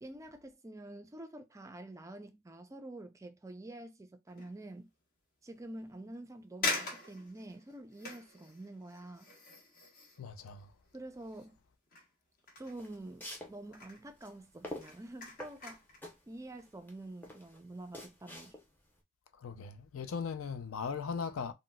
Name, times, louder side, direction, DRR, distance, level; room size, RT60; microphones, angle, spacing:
voice 1, 0.0-4.9 5.4-9.3 10.9-11.6 12.6-15.8 16.3-18.6, right 1 dB, 15° right, 0.3 m, -47 dB
sound 1, 4.3-4.6 5.2-5.3 6.1-6.2 6.6-11.6 11.9-13.3 13.6-14.1 14.5-16.0 16.4-16.6, left 3 dB, 45° left, 1.0 m, -42 dB
voice 2, 10.2-10.7 19.3-21.5, left 6 dB, 70° left, 0.4 m, -38 dB
sound 2, 12.6-18.9, left 1 dB, 10° left, 0.7 m, -47 dB
3.7 x 2.1 x 2.2 m
head